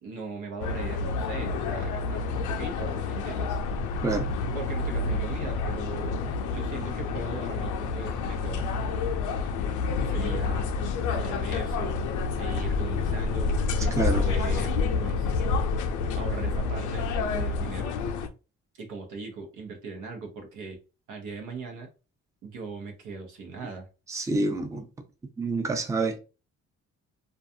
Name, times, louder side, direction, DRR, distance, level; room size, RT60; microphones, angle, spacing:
voice 1, 0.0-3.6 4.5-6.1 6.5-8.7 10.1-10.7 11.1-12.0 12.4-13.5 13.8-15.5 16.2-17.9 18.7-20.8 21.1-21.9 22.4-23.9, right 4 dB, 85° right, 0.9 m, -39 dB
sound 1, 0.6-18.3, left 4 dB, 85° left, 0.5 m, -28 dB
voice 2, 4.0-4.3 14.0-14.2 24.1-24.9 25.4-26.2, right 3 dB, 10° right, 0.5 m, -27 dB
2.4 x 2.3 x 2.6 m
cardioid pair, 90°, 30 cm